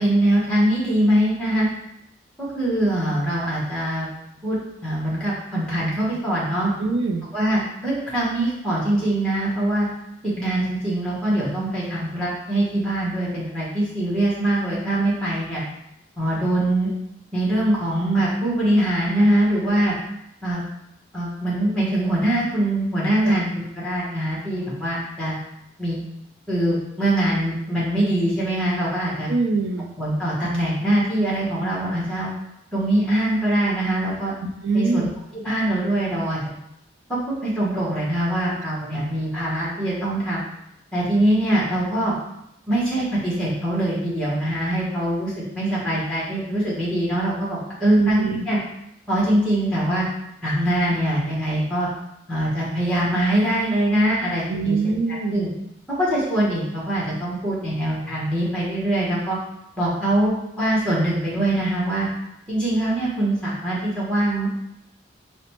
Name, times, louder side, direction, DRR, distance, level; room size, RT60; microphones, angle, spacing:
voice 1, 0.0-1.7 2.4-4.1 4.4-4.6 4.8-6.7 7.3-9.9 10.2-15.6 16.2-16.9 17.3-19.9 20.4-20.6 21.1-25.4 25.8-26.0 26.5-29.3 30.0-32.3 32.7-34.3 34.7-35.0 35.3-36.4 37.1-40.4 40.9-42.1 42.7-48.6 49.1-50.0 50.4-51.9 52.3-54.8 55.1-55.5 55.9-59.4 59.8-62.1 62.5-64.5, right 1 dB, 5° left, -7 dB, 1.0 m, -23 dB
voice 2, 6.8-7.3 23.2-23.4 29.3-29.9 34.4-35.1 47.8-48.4 54.5-55.4, right 4 dB, 75° right, 6 dB, 0.4 m, -23 dB
4.9 x 2.1 x 3.0 m, 0.82 s
head